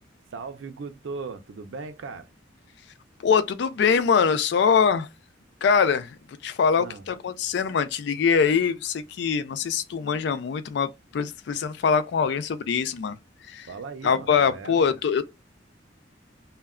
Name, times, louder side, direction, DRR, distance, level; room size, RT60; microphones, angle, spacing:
voice 1, 0.3-2.3 6.7-7.1 13.7-14.8, right 4 dB, 85° right, 0.5 m, -38 dB
voice 2, 3.2-5.1 5.6-6.2 6.4-13.2 13.5-13.7 14.0-15.2, left 6 dB, 65° left, 0.3 m, -23 dB
2.2 x 2.1 x 3.4 m
head